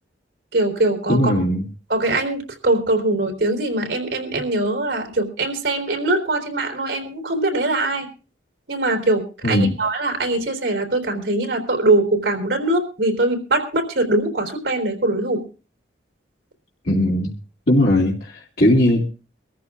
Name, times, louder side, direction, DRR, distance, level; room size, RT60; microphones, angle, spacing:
voice 1, 0.5-1.3 1.9-8.1 8.7-15.4, right 2 dB, 70° right, 5 dB, 3.7 m, -22 dB
voice 2, 1.1-1.6 9.4-9.8 16.8-17.3 17.7-19.0, left 1 dB, 60° left, -6 dB, 2.4 m, -18 dB
24.5 x 14.0 x 2.4 m, 0.35 s
head